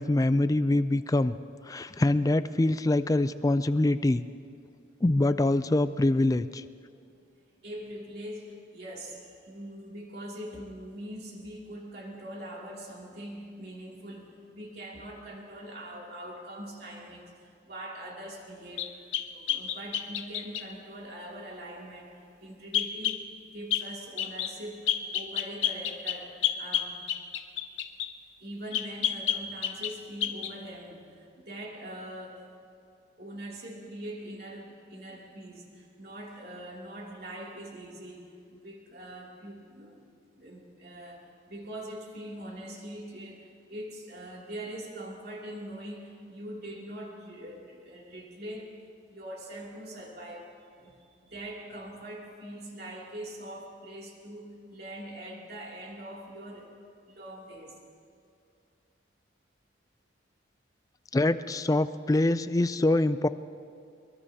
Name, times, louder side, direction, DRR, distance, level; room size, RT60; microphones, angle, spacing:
voice 1, 0.0-1.3 1.7-4.2 5.0-6.6 61.1-63.3, left 2 dB, 20° left, 13 dB, 0.3 m, -24 dB
voice 2, 7.6-23.2 23.5-27.0 28.4-32.5 33.2-40.1 40.3-48.7 49.1-56.7 57.1-57.8, right 1 dB, 55° right, -2 dB, 2.8 m, -43 dB
sound 1, 18.8-20.7 22.7-23.2 23.7-23.9 24.2-24.5 24.9-28.1 28.7-30.0 30.2-30.5, left 10 dB, 80° left, 0.8 m, -30 dB
23.0 x 22.0 x 2.8 m, 2.5 s
head